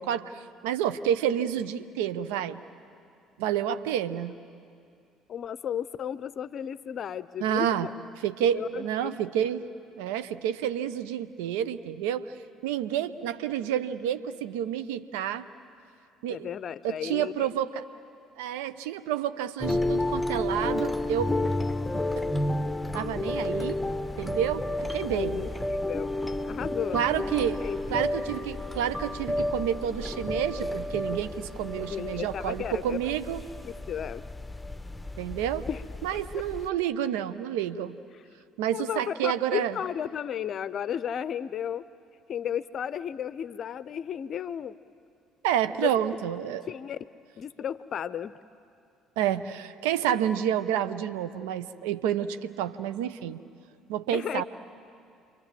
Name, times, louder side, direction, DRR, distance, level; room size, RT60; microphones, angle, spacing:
voice 1, 0.0-2.6 3.4-4.4 7.4-7.9 8.2-9.7 10.0-12.3 12.6-15.5 16.2-16.5 16.8-17.8 18.4-21.3 22.2-22.3 22.9-23.8 24.2-24.6 24.9-25.4 26.9-27.6 27.9-33.4 35.2-35.7 36.0-38.0 38.6-39.8 45.4-46.7 49.2-53.4 53.9-54.4, right 10 dB, 75° right, 12 dB, 0.7 m, -29 dB
voice 2, 5.3-7.9 8.5-9.2 16.3-17.5 25.3-26.1 26.4-27.0 27.6-27.8 31.9-33.0 33.6-34.2 35.7-35.8 36.3-36.4 38.1-38.2 38.7-41.8 42.3-44.8 45.8-45.9 46.7-47.0 47.4-48.4 54.1-54.4, left 9 dB, 50° left, 17 dB, 0.6 m, -34 dB
sound 1, 19.6-36.7, left 1 dB, 5° left, 1.2 m, -31 dB
29.5 x 23.5 x 7.5 m, 2.4 s
hypercardioid pair, 55°, 0 cm